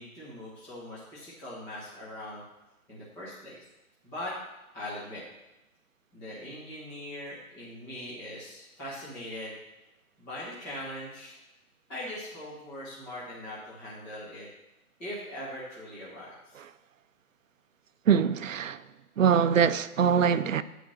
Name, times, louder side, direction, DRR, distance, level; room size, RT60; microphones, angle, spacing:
voice 1, 0.0-2.4 2.9-3.6 4.0-4.3 4.7-5.2 6.1-9.6 10.2-11.4 11.9-14.5 15.0-16.5, left 1 dB, 5° left, 1.2 m, -41 dB
voice 2, 18.1-18.8 19.2-20.6, right 7 dB, 60° right, 0.6 m, -23 dB
9.2 x 5.0 x 6.3 m
hypercardioid pair, 165°, 44 cm